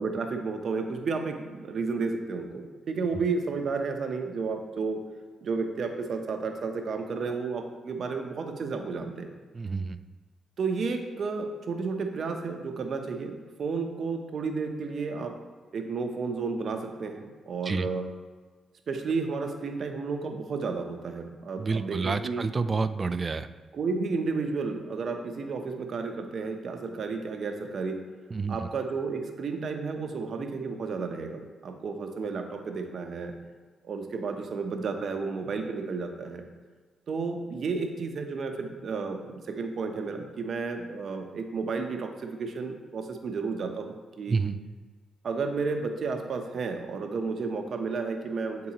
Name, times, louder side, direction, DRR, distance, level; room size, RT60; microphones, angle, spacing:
voice 1, 0.0-5.0 5.4-9.3 10.6-13.3 13.6-15.3 15.7-18.1 18.9-22.5 23.7-28.0 28.5-33.3 33.8-36.4 37.1-44.4 45.2-48.7, right 4 dB, 60° right, 4 dB, 0.7 m, -32 dB
voice 2, 9.5-10.0 17.7-17.9 21.6-23.5 28.3-28.6 44.3-44.6, right 4 dB, 40° right, 11 dB, 0.3 m, -28 dB
8.5 x 3.8 x 2.9 m, 1.4 s
supercardioid pair, 65°, 0 cm